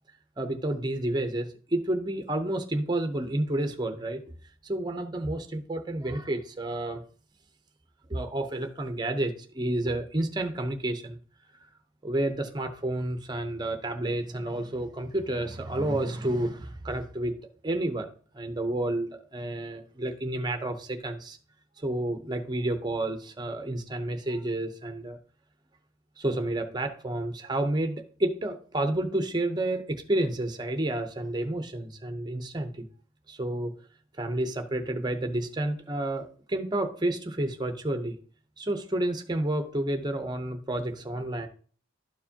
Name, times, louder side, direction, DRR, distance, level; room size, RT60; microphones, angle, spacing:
voice 1, 0.4-4.2 4.6-7.0 8.1-11.2 12.0-17.4 17.6-18.1 18.3-21.4 21.8-25.2 26.2-32.9 33.3-33.7 34.2-38.2 38.6-41.5, right 1 dB, 20° right, 7 dB, 0.7 m, -30 dB
12.0 x 4.7 x 2.8 m, 0.43 s
head